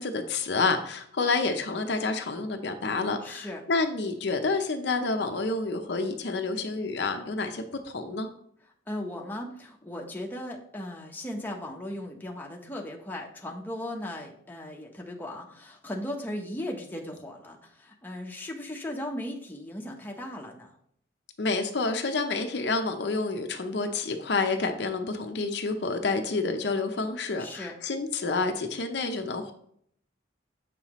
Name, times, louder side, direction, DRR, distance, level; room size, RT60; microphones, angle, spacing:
voice 1, 0.0-8.3 21.4-29.5, left 3 dB, 65° left, 6 dB, 0.6 m, -29 dB
voice 2, 3.2-3.6 8.9-20.8 27.4-27.7, left 1 dB, 10° left, 0 dB, 0.9 m, -37 dB
7.5 x 5.6 x 3.0 m, 0.67 s
head